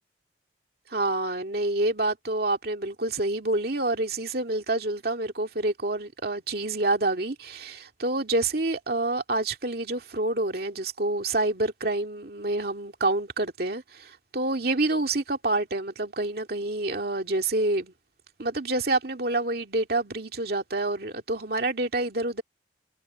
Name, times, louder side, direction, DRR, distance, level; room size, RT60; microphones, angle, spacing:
voice 1, 0.9-17.9 18.4-22.4, right 2 dB, 55° right, 2.4 m, -27 dB
head